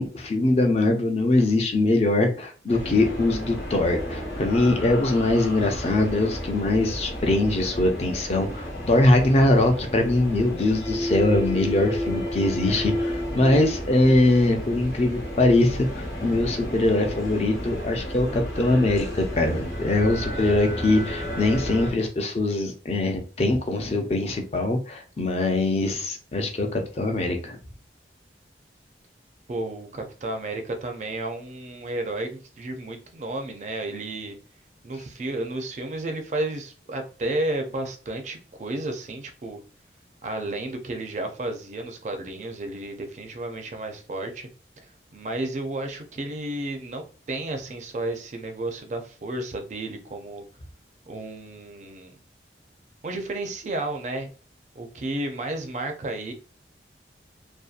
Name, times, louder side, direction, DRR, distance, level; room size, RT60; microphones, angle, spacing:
voice 1, 0.0-27.6, left 2 dB, 35° left, 4 dB, 0.4 m, -22 dB
sound 1, 2.7-21.9, equal, 55° left, 0.9 m, -32 dB
voice 2, 29.5-34.4 34.8-39.6 40.2-44.5 45.1-50.4 51.1-52.2 53.0-54.3 54.8-56.3, right 2 dB, 40° right, 5 dB, 0.4 m, -32 dB
2.6 x 2.2 x 2.4 m, 0.37 s
head